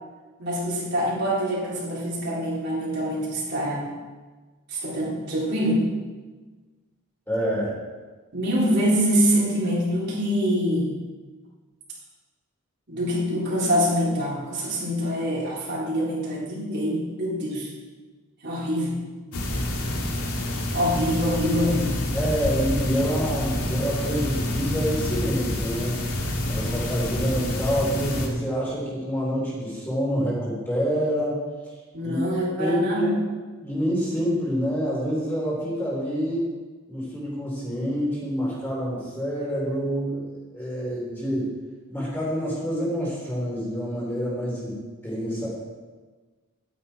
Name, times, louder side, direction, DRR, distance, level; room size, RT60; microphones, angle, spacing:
voice 1, 0.4-3.9 4.7-5.9 8.3-10.9 12.9-17.7 18.4-19.0 20.7-22.0 31.9-33.1, equal, 50° right, -7 dB, 4.0 m, -25 dB
voice 2, 7.3-7.7 22.1-26.0 26.5-31.4 32.0-32.2 32.6-33.1 33.6-36.5 36.9-41.5 41.9-45.5, equal, 10° left, -6 dB, 3.9 m, -27 dB
sound 1, 19.3-28.3, left 1 dB, 85° left, 1.9 m, -28 dB
12.0 x 9.5 x 4.5 m, 1.3 s
head